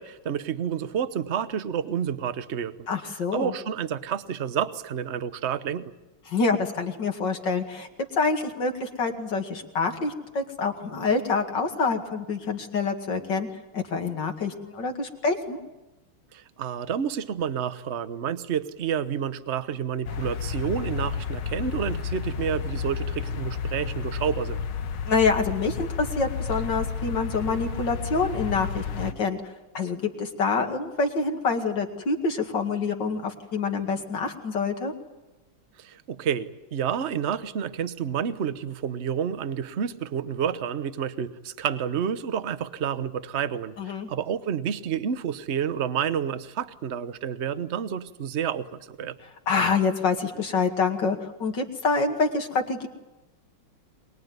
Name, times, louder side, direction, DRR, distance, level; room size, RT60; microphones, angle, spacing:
voice 1, 0.0-2.9 3.3-5.9 16.3-24.6 35.8-49.1, right 8 dB, 45° right, 13 dB, 0.9 m, -29 dB
voice 2, 2.9-3.5 6.3-7.9 8.1-13.5 13.7-15.6 25.1-34.9 43.8-44.1 49.5-52.9, left 4 dB, 55° left, 4 dB, 2.7 m, -26 dB
sound 1, 20.1-29.1, left 6 dB, 75° left, 1.9 m, -31 dB
23.5 x 21.0 x 9.5 m, 1.0 s
omnidirectional pair, 2.4 m